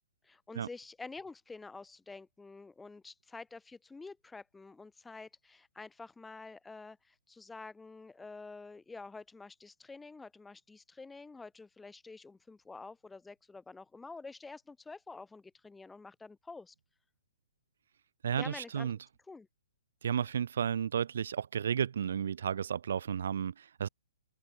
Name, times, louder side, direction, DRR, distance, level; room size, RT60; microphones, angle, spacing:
voice 1, 0.2-16.7 18.4-18.9 19.3-19.5, left 3 dB, 5° left, 4.8 m, -48 dB
voice 2, 18.2-19.0 20.0-23.9, right 8 dB, 55° right, 2.1 m, -33 dB
open air
figure-of-eight pair, 120°, 0 cm